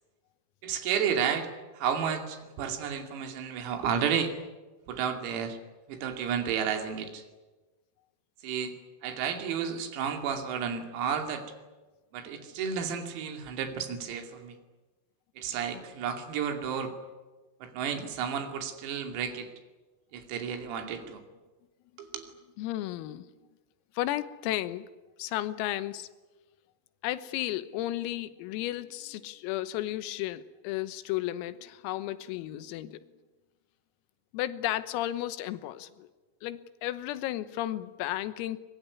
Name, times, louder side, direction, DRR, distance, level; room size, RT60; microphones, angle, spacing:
voice 1, 0.6-1.5 1.8-4.4 4.9-5.6 5.9-7.2 8.4-8.7 9.0-11.5 12.1-14.6 15.4-16.9 17.6-19.5 20.1-21.2 22.0-22.2, right 7 dB, 90° right, 5 dB, 5.4 m, -32 dB
voice 2, 22.6-23.3 24.0-24.9 25.2-26.1 27.0-33.0 34.3-36.1 36.4-38.6, left 14 dB, 90° left, 13 dB, 3.8 m, -33 dB
23.5 x 22.0 x 9.8 m, 1.2 s
omnidirectional pair, 6.0 m